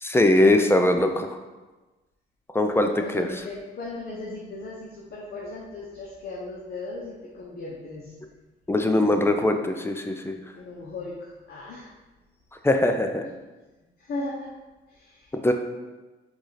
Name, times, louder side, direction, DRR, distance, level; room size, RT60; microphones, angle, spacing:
voice 1, 0.0-1.4 2.5-3.3 8.7-10.4 12.6-13.2 15.4-15.5, left 1 dB, 10° left, 5 dB, 0.4 m, -21 dB
voice 2, 2.7-8.1 8.8-9.5 10.5-11.9 14.0-14.5 14.9-15.5, left 2 dB, 50° left, -4 dB, 0.8 m, -37 dB
4.7 x 2.5 x 4.1 m, 1.2 s
cardioid pair, 90°, 20 cm